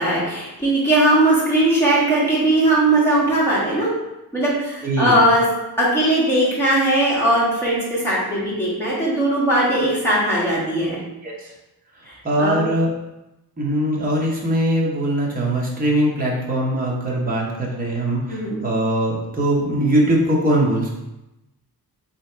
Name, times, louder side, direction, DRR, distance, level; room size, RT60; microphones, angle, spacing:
voice 1, 0.0-3.9 4.3-5.4 5.8-11.0 12.1-12.6 18.3-18.6, right 1 dB, 5° left, -9 dB, 1.5 m, -19 dB
voice 2, 4.8-5.2 11.2-11.5 12.2-12.9 13.6-20.9, right 1 dB, 20° right, -4 dB, 0.8 m, -21 dB
3.3 x 2.7 x 4.3 m, 0.95 s
wide cardioid pair, 160°, 40 cm